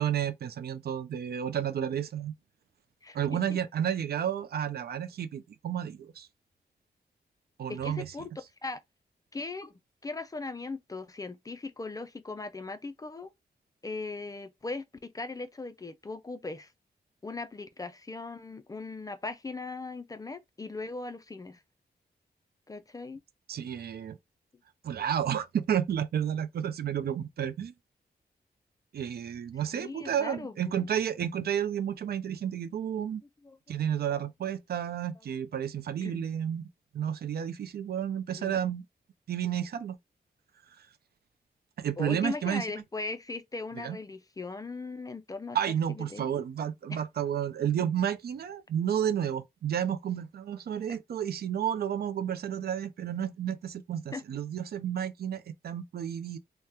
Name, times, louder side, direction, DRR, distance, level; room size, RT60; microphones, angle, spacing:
voice 1, 0.0-2.3 3.1-6.3 7.6-8.1 23.5-24.2 24.8-27.7 28.9-33.2 33.7-36.6 36.9-38.8 39.3-40.0 41.8-42.7 43.7-44.0 45.5-56.4, right 9 dB, 70° right, 0.4 m, -31 dB
voice 2, 3.0-3.6 7.7-8.3 8.6-8.8 9.3-9.7 10.0-13.3 13.8-16.7 17.2-21.6 22.7-23.2 29.7-30.9 33.4-33.6 36.0-36.3 38.3-38.6 42.0-45.6 45.9-46.3 46.9-47.0 54.1-54.2, left 3 dB, 20° left, 0.3 m, -39 dB
2.8 x 2.1 x 3.4 m
wide cardioid pair, 115°, 17 cm